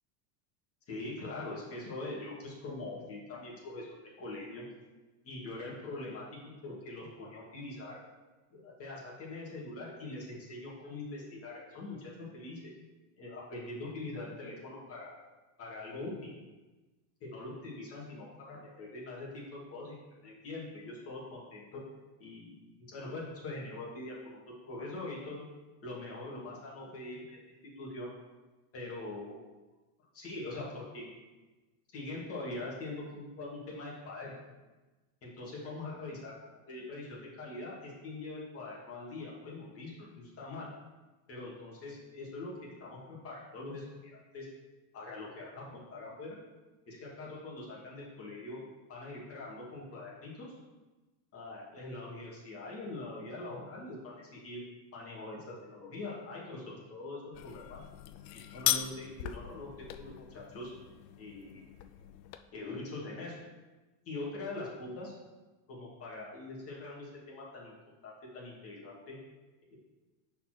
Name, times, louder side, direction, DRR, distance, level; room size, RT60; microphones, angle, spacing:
voice 1, 0.9-3.9 4.2-4.6 5.2-6.2 6.6-8.0 8.5-12.7 13.2-15.1 15.6-16.3 17.2-20.0 20.2-21.8 22.2-24.4 24.6-25.4 25.8-27.4 27.8-28.1 28.7-29.4 30.1-31.1 31.9-34.3 35.2-36.3 36.7-40.7 41.3-44.5 44.9-46.4 46.9-48.6 48.9-50.5 51.3-54.6 54.9-57.8 58.5-60.7 61.2-61.6 62.5-63.3 64.1-65.1 65.7-67.7 68.0-69.2, left 2 dB, 30° left, -5 dB, 2.3 m, -43 dB
sound 1, 57.3-62.4, left 13 dB, 85° left, 0.7 m, -38 dB
5.4 x 4.4 x 6.2 m, 1.2 s
supercardioid pair, 150°, 48 cm